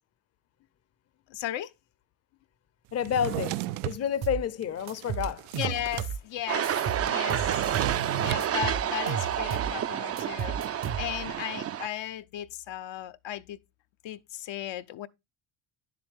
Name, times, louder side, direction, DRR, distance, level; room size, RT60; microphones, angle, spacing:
voice 1, 1.3-1.7 5.6-7.8 8.1-13.6 14.0-15.1, left 12 dB, 65° left, 0.7 m, -36 dB
voice 2, 2.9-5.5, left 8 dB, 30° left, 0.7 m, -30 dB
Drawer open or close, 3.0-4.0 4.6-6.1 6.4-6.5 6.7-8.5, right 15 dB, 90° right, 0.6 m, -34 dB
sound 1, 4.2-4.5 4.9-6.2 6.6-8.0 8.4-9.8 10.2-11.3, right 8 dB, 50° right, 0.8 m, -34 dB
sound 2, 6.5-11.9, right 10 dB, 30° right, 0.4 m, -30 dB
9.9 x 7.6 x 3.5 m
cardioid pair, 120°, 49 cm